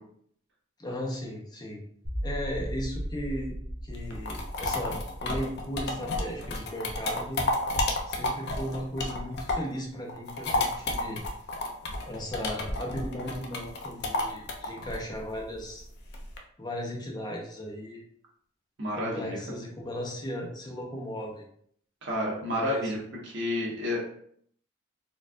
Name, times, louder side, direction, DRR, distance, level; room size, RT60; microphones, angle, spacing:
voice 1, 0.8-1.8 2.2-3.5 3.8-7.4 8.1-11.2 12.1-15.9 16.6-18.0 18.9-21.4 22.5-22.9, equal, 20° left, -1 dB, 0.6 m, -36 dB
sound 1, 2.0-8.1, equal, 40° right, 0.9 m, -38 dB
sound 2, 3.9-9.8 10.1-16.4, left 2 dB, 60° left, 0.5 m, -31 dB
voice 2, 18.8-19.4 22.0-23.0 23.2-24.0, left 1 dB, 60° right, -3 dB, 1.1 m, -30 dB
4.2 x 2.3 x 2.5 m, 0.64 s
head